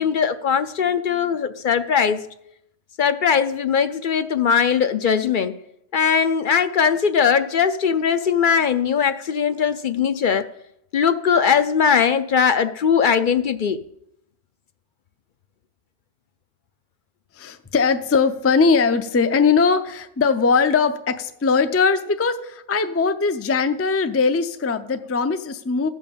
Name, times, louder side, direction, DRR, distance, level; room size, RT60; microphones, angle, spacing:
voice 1, 0.0-2.2 3.0-5.6 5.9-10.5 10.9-13.8, left 7 dB, 60° left, 12 dB, 0.7 m, -20 dB
voice 2, 17.3-25.9, left 5 dB, 20° left, 9 dB, 0.4 m, -20 dB
15.0 x 5.5 x 6.8 m, 0.78 s
omnidirectional pair, 1.1 m